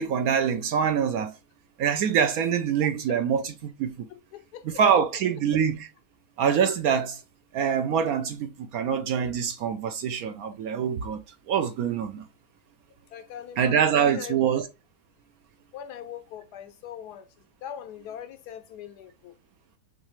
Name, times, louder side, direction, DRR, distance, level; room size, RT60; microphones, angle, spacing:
voice 1, 0.0-1.3 1.8-4.1 4.8-5.9 6.4-7.2 7.5-11.2 11.5-12.2 13.6-14.6, right 7 dB, 70° right, 0.9 m, -25 dB
voice 2, 4.1-5.0 13.1-14.4 15.7-17.3 17.6-19.3, left 9 dB, 75° left, 1.1 m, -41 dB
6.3 x 2.4 x 3.0 m
omnidirectional pair, 1.8 m